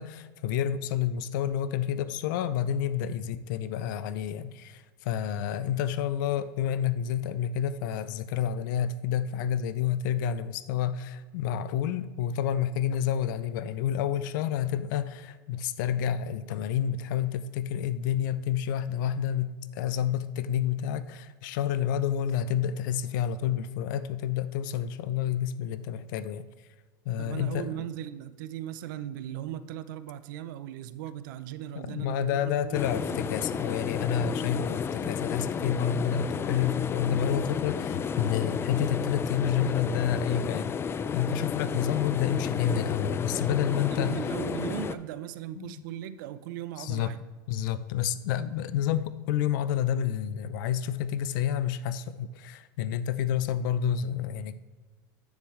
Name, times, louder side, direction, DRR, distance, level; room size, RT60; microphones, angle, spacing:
voice 1, 0.0-26.5 27.1-27.9 31.8-40.8 41.1-44.2 45.6-45.8 46.8-47.1 47.5-54.6, left 9 dB, 75° left, 15 dB, 0.5 m, -29 dB
voice 2, 27.2-33.2 43.8-47.2, right 11 dB, 75° right, 14 dB, 0.6 m, -38 dB
sound 1, 32.7-45.0, left 6 dB, 25° left, 0.4 m, -32 dB
9.7 x 7.1 x 3.1 m, 1.3 s
supercardioid pair, 115°, 11 cm